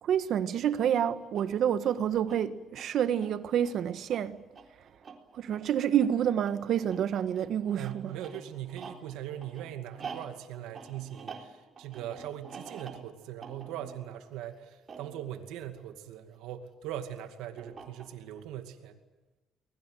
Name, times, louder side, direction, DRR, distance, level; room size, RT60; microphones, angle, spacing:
voice 1, 0.0-4.4 5.3-8.1, right 9 dB, 60° right, 1.4 m, -28 dB
sound 1, 0.9-16.5 17.6-18.4, right 5 dB, 35° right, 4.0 m, -49 dB
voice 2, 7.7-19.0, right 11 dB, 90° right, 2.3 m, -40 dB
24.0 x 20.5 x 9.2 m
cardioid pair, 110°, 0 cm